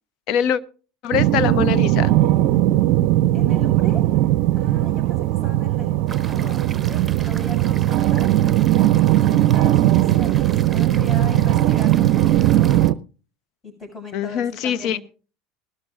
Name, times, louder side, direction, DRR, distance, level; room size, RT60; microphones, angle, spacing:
voice 1, 0.3-0.6 1.0-2.1 14.1-15.0, left 9 dB, 55° left, 14 dB, 0.8 m, -23 dB
sound 1, 1.1-12.9, right 14 dB, 65° right, 0.5 m, -18 dB
voice 2, 3.3-4.1 4.6-8.4 9.1-12.7 13.6-15.0, left 2 dB, 30° left, 4 dB, 7.1 m, -38 dB
sound 2, 6.1-12.9, right 5 dB, 20° right, 1.1 m, -38 dB
20.0 x 12.5 x 2.5 m, 0.36 s
hypercardioid pair, 85°, 0 cm